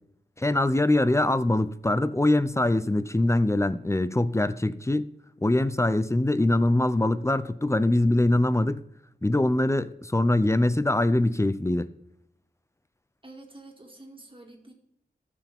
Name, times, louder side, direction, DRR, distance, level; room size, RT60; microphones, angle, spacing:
voice 1, 0.4-5.1 5.4-8.8 9.2-11.9, left 1 dB, 15° left, 0.5 m, -23 dB
voice 2, 13.2-14.7, right 2 dB, 25° right, 2.3 m, -47 dB
15.0 x 5.8 x 3.6 m
wide cardioid pair, 55°, 19 cm